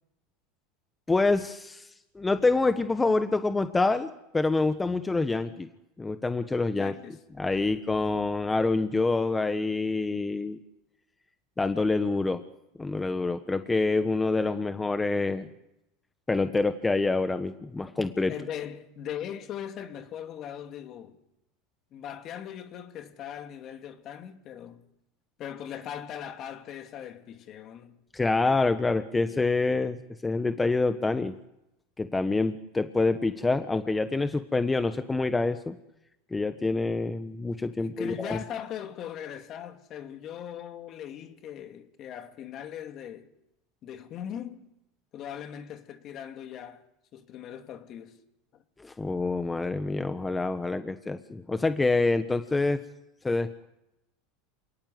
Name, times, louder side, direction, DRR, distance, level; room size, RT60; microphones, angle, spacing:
voice 1, 1.1-5.7 6.0-6.9 7.4-10.6 11.6-12.4 12.8-15.5 16.3-18.3 28.1-31.3 32.0-35.7 36.3-38.4 48.8-52.8 53.2-53.7, left 3 dB, 15° left, 1.3 m, -26 dB
voice 2, 6.6-7.2 18.3-21.2 21.9-24.9 25.4-28.0 37.8-43.3 43.8-44.7 45.1-46.8 47.1-48.2 48.5-48.6, left 9 dB, 45° left, 2.5 m, -40 dB
28.0 x 19.0 x 7.9 m
supercardioid pair, 115°, 0 cm